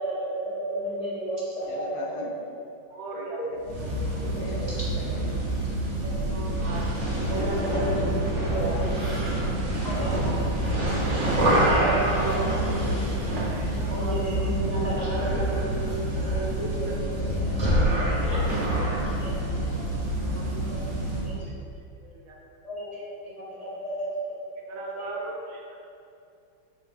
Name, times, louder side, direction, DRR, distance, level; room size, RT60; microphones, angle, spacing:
voice 1, 0.0-2.3 2.8-3.2 4.1-4.7 6.0-6.2 7.0-8.9 9.8-10.1 11.1-13.1 13.9-17.7 18.2-18.4 19.2-19.3 20.1-20.2 20.7-20.8 21.2-21.5 22.6-24.4 24.6-25.1, right 1 dB, 20° right, -9 dB, 1.3 m, -33 dB
voice 2, 1.7-2.3 3.4-4.7 5.0-5.4 8.3-9.5 17.2-18.5, left 2 dB, 80° left, 1 dB, 1.5 m, -42 dB
voice 3, 2.9-3.4 4.2-4.7 6.3-6.9 7.3-7.9 10.0-10.4 11.2-11.8 13.2-14.5 16.8-16.9 20.2-21.1 21.3-21.4 22.0-22.4 24.7-25.8, right 3 dB, 75° right, -2 dB, 1.6 m, -41 dB
sound 1, 3.6-21.3, right 1 dB, 45° right, 1.1 m, -26 dB
7.8 x 3.8 x 3.4 m, 2.5 s
omnidirectional pair, 2.2 m